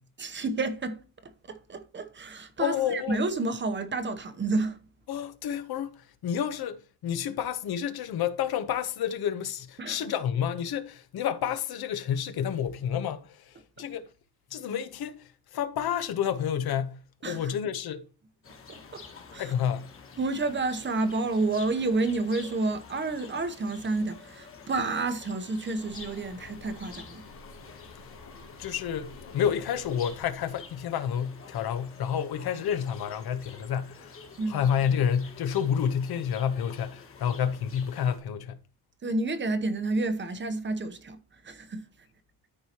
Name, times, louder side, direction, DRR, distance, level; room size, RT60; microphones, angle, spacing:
voice 1, 0.2-4.8 9.8-10.0 17.2-17.5 18.7-19.0 19.3-19.5 20.2-27.2 34.4-34.6 39.0-41.2 41.4-41.8, right 3 dB, 30° right, 0.9 m, -30 dB
voice 2, 2.6-3.2 5.1-6.8 7.0-14.1 14.5-18.1 19.4-19.9 28.6-34.2 34.5-38.6, left 8 dB, 70° left, 1.0 m, -29 dB
sound 1, 18.4-38.2, left 5 dB, 35° left, 1.6 m, -49 dB
sound 2, 25.7-30.8, left 3 dB, 90° left, 2.8 m, -50 dB
13.0 x 4.7 x 2.9 m
cardioid pair, 160°, 39 cm